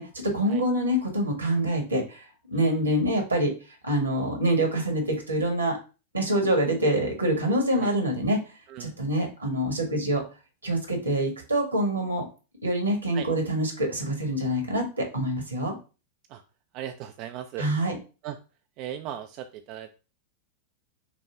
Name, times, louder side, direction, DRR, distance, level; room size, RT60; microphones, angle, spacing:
voice 1, 0.0-2.2 2.5-3.5 3.8-5.8 6.1-8.4 8.8-10.2 10.6-12.2 12.6-15.7 17.6-18.0, right 1 dB, 80° right, 3 dB, 1.4 m, -25 dB
voice 2, 16.7-17.7 18.2-18.4 18.8-19.9, right 11 dB, 40° right, 7 dB, 0.3 m, -37 dB
5.8 x 2.2 x 3.7 m, 0.33 s
figure-of-eight pair, 90°, 0 cm